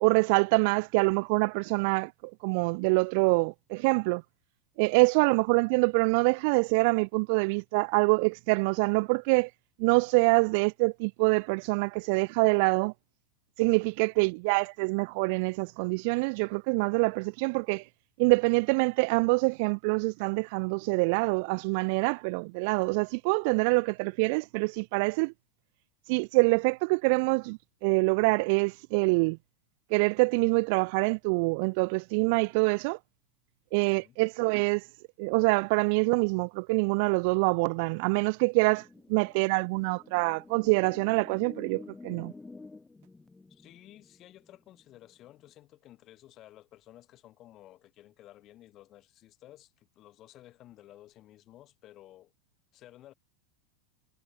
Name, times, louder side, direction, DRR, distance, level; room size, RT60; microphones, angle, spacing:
voice 1, 0.0-2.1 2.4-4.2 4.8-9.5 9.8-12.9 13.6-17.8 18.2-25.3 26.1-29.4 29.9-33.0 33.7-34.8 35.2-42.3, right 31 dB, 40° right, 0.4 m, -25 dB
sound 1, 38.6-45.5, left 3 dB, 5° left, 1.1 m, -50 dB
voice 2, 43.5-52.3 52.7-53.1, left 14 dB, 25° left, 3.1 m, -54 dB
supercardioid pair, 175°, 0 cm